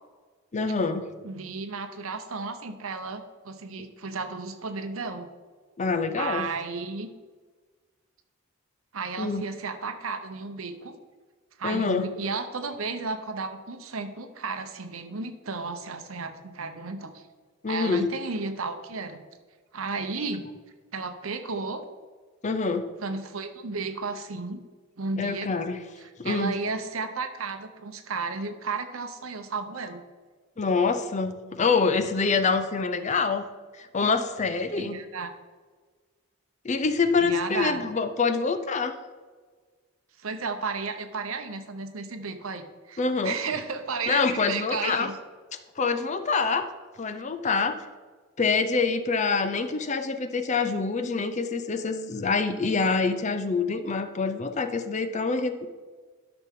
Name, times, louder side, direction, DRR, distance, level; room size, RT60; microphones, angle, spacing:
voice 1, 0.5-1.1 5.8-6.5 9.2-9.4 11.6-12.1 17.6-18.1 22.4-22.9 25.2-25.8 26.2-26.6 30.6-33.4 33.7-35.0 36.6-38.9 43.0-43.4 44.1-45.1 45.8-46.7 47.0-47.9 48.4-55.7, left 4 dB, 35° left, 10 dB, 0.6 m, -26 dB
voice 2, 1.2-5.3 6.2-7.1 8.9-10.9 11.6-17.2 17.7-19.2 19.7-20.5 20.9-21.8 23.0-24.6 25.0-25.5 26.2-30.0 34.7-35.3 37.2-37.9 40.2-45.2, right 4 dB, 85° right, 8 dB, 0.9 m, -33 dB
13.0 x 5.9 x 3.7 m, 1.4 s
head